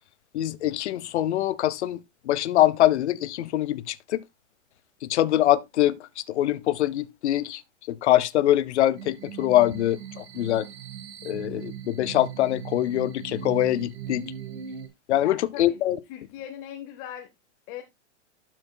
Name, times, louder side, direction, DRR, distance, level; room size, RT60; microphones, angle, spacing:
voice 1, 0.3-4.2 5.0-7.6 7.9-10.7 11.2-14.3 15.1-16.0, left 13 dB, 60° left, 0.8 m, -24 dB
sound 1, 9.0-14.9, right 9 dB, 55° right, 1.8 m, -39 dB
voice 2, 15.1-15.8 16.1-17.3 17.7-17.8, left 10 dB, 20° left, 0.6 m, -39 dB
12.0 x 6.0 x 2.2 m
supercardioid pair, 160°, 38 cm